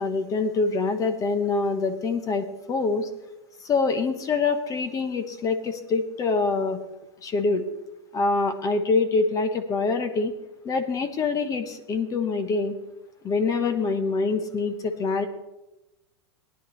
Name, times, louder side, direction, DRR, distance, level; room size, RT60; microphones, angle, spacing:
voice 1, 0.0-3.1 3.6-6.8 7.2-7.6 8.1-10.3 10.6-12.7 13.2-15.3, left 4 dB, 25° left, 9 dB, 1.0 m, -25 dB
17.5 x 10.0 x 3.1 m, 0.99 s
supercardioid pair, 135°, 14 cm